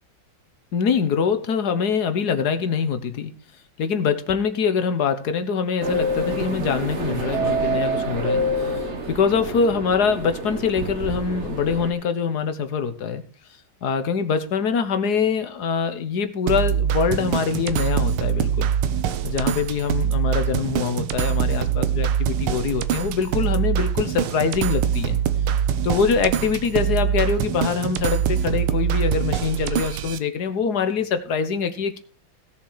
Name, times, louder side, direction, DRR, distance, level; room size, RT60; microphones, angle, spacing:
voice 1, 0.7-3.3 3.8-8.8 9.1-13.2 13.8-18.7 19.2-25.2 25.8-32.0, left 6 dB, 55° left, 9 dB, 1.6 m, -24 dB
sound 1, 5.8-11.9, right 1 dB, 40° right, 1.4 m, -27 dB
sound 2, 16.5-30.2, right 9 dB, 85° right, 1.7 m, -24 dB
16.5 x 7.3 x 4.8 m, 0.41 s
omnidirectional pair, 2.3 m